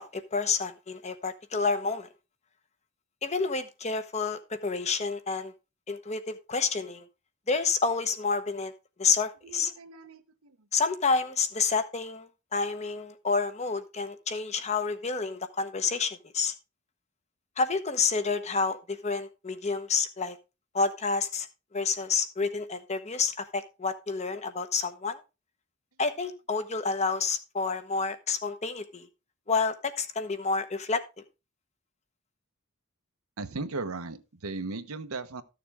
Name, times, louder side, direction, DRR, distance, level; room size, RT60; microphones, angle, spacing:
voice 1, 0.0-2.1 3.2-5.5 5.9-7.0 7.5-8.7 9.0-9.7 10.7-16.5 17.6-20.4 20.7-21.5 21.7-25.2 26.0-29.1 29.5-31.0, left 4 dB, 30° left, 1.0 m, -29 dB
voice 2, 9.4-10.7 33.4-35.4, right 3 dB, 85° right, 0.9 m, -37 dB
13.5 x 6.8 x 3.5 m
head